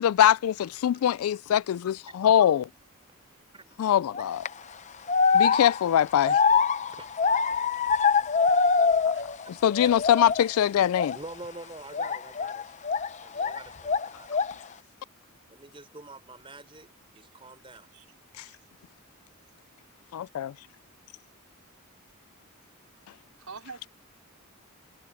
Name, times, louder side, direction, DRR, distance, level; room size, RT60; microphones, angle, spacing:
voice 1, 0.0-2.7 3.8-4.5 5.3-6.4 9.5-11.1 18.4-18.5 20.1-20.5, left 10 dB, 80° left, 0.3 m, -23 dB
voice 2, 3.3-3.8 6.9-7.2 7.7-7.8 11.1-12.6 13.2-14.3 15.5-17.9, right 2 dB, 25° right, 4.7 m, -46 dB
sound 1, 4.1-4.5 5.1-9.4 9.7-10.5 10.9-11.2 11.9-13.6 13.8-14.6, left 5 dB, 35° left, 0.6 m, -24 dB
voice 3, 7.7-8.2 9.1-9.2 9.8-10.1 10.4-10.5 12.6-12.7 17.3-17.5 17.9-18.1 18.5-18.6 23.4-23.9, right 5 dB, 80° right, 4.2 m, -48 dB
head